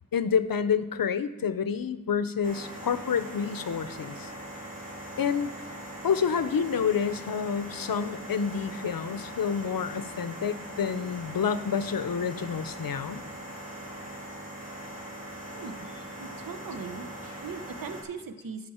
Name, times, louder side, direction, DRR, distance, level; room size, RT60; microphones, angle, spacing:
voice 1, 0.1-4.3 5.2-5.5 6.0-13.2, left 7 dB, 90° left, 13 dB, 0.6 m, -28 dB
sound 1, 2.4-18.0, right 1 dB, 25° right, 2.7 m, -41 dB
voice 2, 15.5-15.9 16.2-18.7, right 5 dB, 80° right, 9 dB, 0.7 m, -40 dB
11.5 x 6.0 x 4.3 m, 1.1 s
wide cardioid pair, 55°, 34 cm